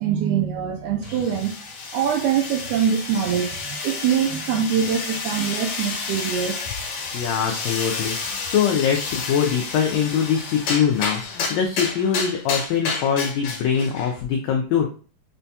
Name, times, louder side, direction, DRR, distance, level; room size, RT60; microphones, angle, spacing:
voice 1, 0.0-1.6 1.9-6.6, right 8 dB, 80° right, 1.7 m, -23 dB
sound 1, 1.0-14.2, left 4 dB, 70° left, 1.9 m, -30 dB
voice 2, 7.1-14.9, left 7 dB, 90° left, 1.5 m, -23 dB
5.8 x 2.2 x 2.7 m
omnidirectional pair, 3.7 m